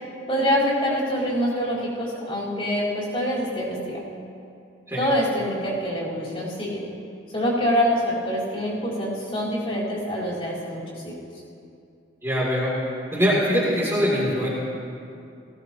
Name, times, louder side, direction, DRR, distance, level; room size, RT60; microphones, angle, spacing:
voice 1, 0.3-4.0 5.0-6.8 7.3-11.2, equal, 30° left, -8 dB, 4.3 m, -25 dB
voice 2, 12.2-12.7 13.1-14.5, equal, 15° right, -7 dB, 3.0 m, -22 dB
19.5 x 17.0 x 3.0 m, 2.5 s
head